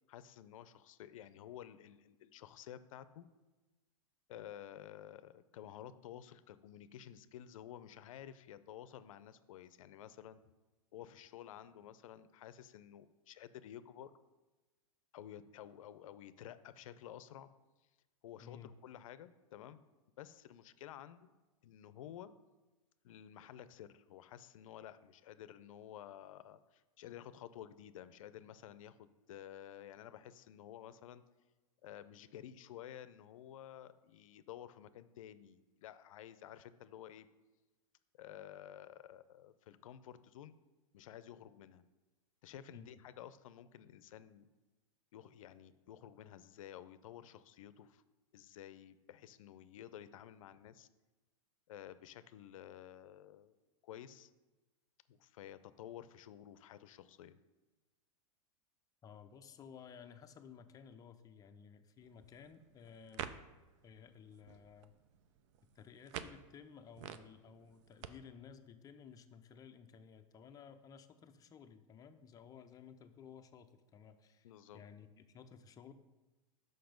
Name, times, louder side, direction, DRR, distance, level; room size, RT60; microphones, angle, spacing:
voice 1, 0.1-3.3 4.3-10.4 10.9-14.1 15.1-17.5 18.2-19.9 20.2-21.3 21.6-22.3 23.0-31.2 31.8-37.3 38.2-40.6 40.9-41.8 42.4-44.5 45.1-48.0 48.3-50.9 51.7-53.5 53.8-54.3 55.1-57.4 74.4-74.8, left 11 dB, 75° left, 14 dB, 0.5 m, -52 dB
voice 2, 18.4-18.7 42.7-43.0 59.0-63.3 63.8-64.9 65.8-75.9, left 7 dB, 20° left, 8 dB, 0.5 m, -56 dB
sound 1, 62.0-68.1, right 9 dB, 60° right, 0.5 m, -51 dB
5.9 x 5.3 x 5.1 m, 1.2 s
hypercardioid pair, 125°, 18 cm